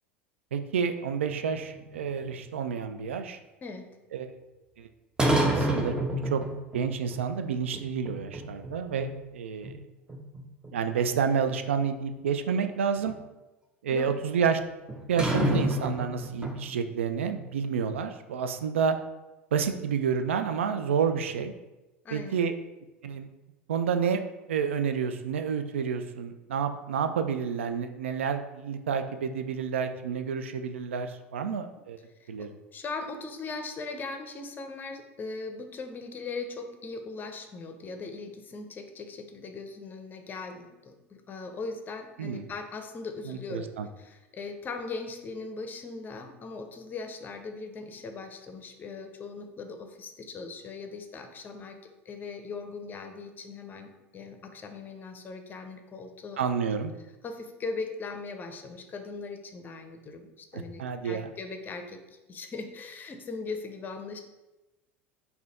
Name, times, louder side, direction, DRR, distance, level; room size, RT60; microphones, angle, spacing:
voice 1, 0.5-3.4 4.1-4.3 4.8-4.9 5.4-6.0 6.3-6.4 6.7-9.7 10.7-13.1 13.8-14.6 15.1-19.0 19.5-21.5 22.1-22.5 23.0-23.3 23.7-24.2 24.5-32.0 32.3-32.6 42.2-42.5 43.3-43.9 56.4-56.9 60.5-61.3, right 6 dB, 70° right, 8 dB, 0.4 m, -29 dB
sound 1, 1.3-2.7 5.2-6.8 7.1-7.2 7.7-8.7 9.0-9.1 9.6-9.7 10.1-11.5 13.1-13.2 14.9-16.7, right 1 dB, 10° right, 0.7 m, -28 dB
voice 2, 22.0-22.3 31.5-31.6 32.2-43.7 44.0-51.8 52.1-56.4 57.2-64.2, left 4 dB, 25° left, 5 dB, 0.6 m, -39 dB
4.0 x 2.8 x 4.1 m, 1.0 s
figure-of-eight pair, 75°, 7 cm